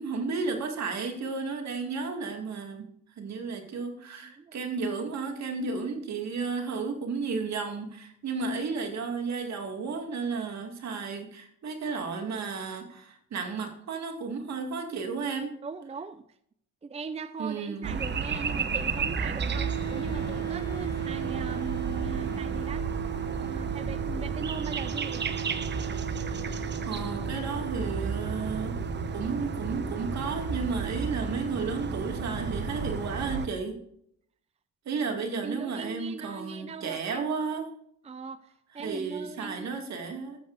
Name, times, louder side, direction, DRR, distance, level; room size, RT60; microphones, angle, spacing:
voice 1, 0.0-2.9 3.2-15.6 17.4-18.0 26.9-28.8 29.1-33.8 34.9-37.7 38.8-40.4, right 4 dB, 65° right, 4 dB, 2.2 m, -33 dB
voice 2, 4.2-4.6 15.6-16.3 16.8-22.9 23.4-25.2 35.4-37.3 38.0-39.7, right 5 dB, 20° right, 12 dB, 0.5 m, -39 dB
sound 1, 17.8-33.5, right 5 dB, 35° right, 0.9 m, -33 dB
sound 2, 19.5-33.1, right 8 dB, 60° left, 1.9 m, -37 dB
14.0 x 7.2 x 2.6 m, 0.68 s
cardioid pair, 90°, 30 cm